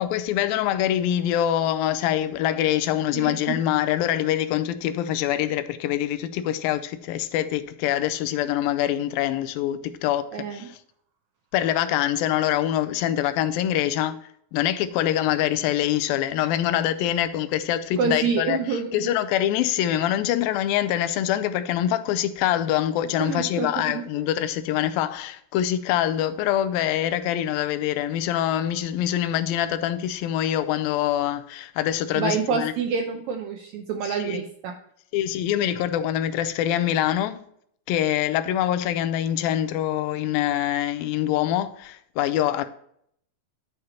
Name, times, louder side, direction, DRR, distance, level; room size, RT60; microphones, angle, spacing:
voice 1, 0.0-10.8 11.5-14.2 14.5-32.7 34.0-34.4 35.1-37.4 37.9-42.7, left 11 dB, 90° left, 2.4 m, -24 dB
voice 2, 3.1-3.6 10.3-10.7 18.0-19.1 23.2-24.0 32.1-34.7, right 5 dB, 80° right, 1.6 m, -27 dB
9.4 x 5.0 x 4.3 m
omnidirectional pair, 4.1 m